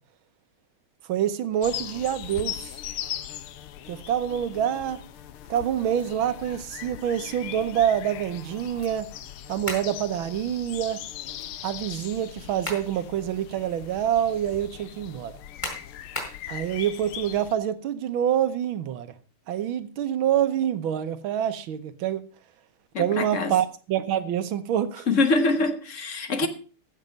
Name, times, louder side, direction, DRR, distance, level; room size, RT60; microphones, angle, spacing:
voice 1, 1.1-2.8 3.9-5.0 5.5-9.1 9.5-11.0 11.6-15.3 16.5-19.1 19.5-22.2 23.0-25.1 26.4-26.5, right 10 dB, 75° right, 1.6 m, -26 dB
sound 1, 1.6-17.6, left 11 dB, 85° left, 1.7 m, -39 dB
sound 2, 9.7-10.0 12.3-12.9 13.4-13.5 15.6-16.4, equal, 15° left, 3.9 m, -33 dB
voice 2, 22.9-23.5 25.1-26.5, left 3 dB, 45° left, 1.2 m, -24 dB
15.0 x 6.6 x 5.2 m
omnidirectional pair, 2.3 m